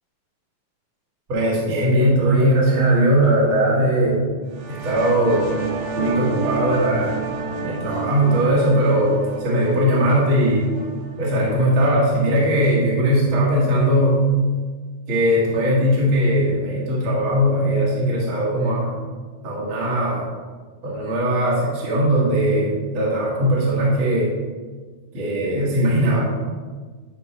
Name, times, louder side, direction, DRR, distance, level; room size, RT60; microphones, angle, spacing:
voice 1, 1.3-4.3 4.7-5.5 5.9-7.2 7.6-10.7 11.2-14.2 15.1-19.0 19.4-20.2 20.8-24.3 25.1-26.2, right 1 dB, 50° right, -6 dB, 1.6 m, -19 dB
sound 1, 4.5-11.9, right 4 dB, 90° right, 2.8 m, -30 dB
10.0 x 3.8 x 4.2 m, 1.5 s
omnidirectional pair, 4.5 m